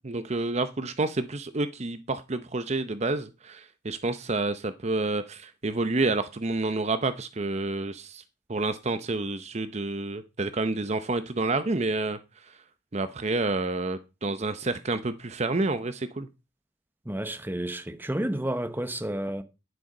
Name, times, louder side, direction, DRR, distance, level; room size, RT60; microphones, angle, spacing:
voice 1, 0.0-8.2 8.5-12.6 12.9-16.3, right 2 dB, 35° right, 0.7 m, -29 dB
voice 2, 17.0-19.4, right 1 dB, 10° right, 0.9 m, -31 dB
10.5 x 7.8 x 5.4 m
head